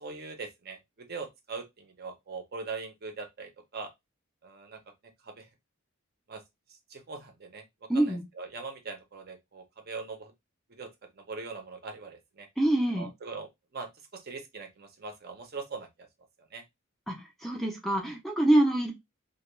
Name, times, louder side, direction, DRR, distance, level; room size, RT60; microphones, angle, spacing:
voice 1, 0.0-3.9 4.4-4.8 5.2-5.5 6.3-6.4 6.7-10.3 10.7-10.9 11.1-12.5 12.9-16.1 16.5-16.6, right 4 dB, 45° right, 0.6 m, -41 dB
voice 2, 7.9-8.2 12.6-13.1 17.1-18.9, right 1 dB, ahead, 0.4 m, -25 dB
2.2 x 2.2 x 3.0 m
head